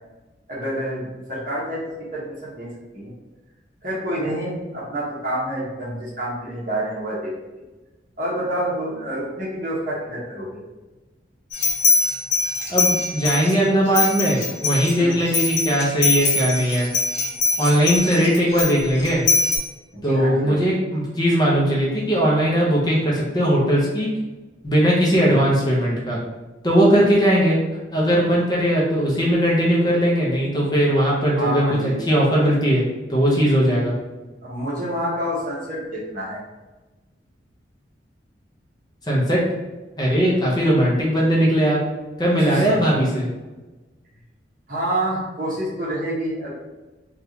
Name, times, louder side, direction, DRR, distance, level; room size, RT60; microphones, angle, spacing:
voice 1, 0.5-2.7 2.9-3.1 3.8-7.3 8.2-10.6 15.0-15.3 19.9-20.6 25.2-25.4 31.4-32.0 34.4-36.4 42.4-42.8 44.7-46.5, right 1 dB, 45° right, -6 dB, 1.2 m, -28 dB
sound 1, 11.5-13.5 13.9-19.6, left 3 dB, 70° left, 0.9 m, -22 dB
voice 2, 12.7-16.9 17.6-19.2 20.0-24.1 24.6-26.2 26.6-27.6 27.9-32.8 33.1-33.9 39.1-39.4 40.0-41.8 42.2-43.3, equal, 20° left, -4 dB, 0.6 m, -19 dB
3.4 x 2.4 x 2.8 m, 1.2 s
head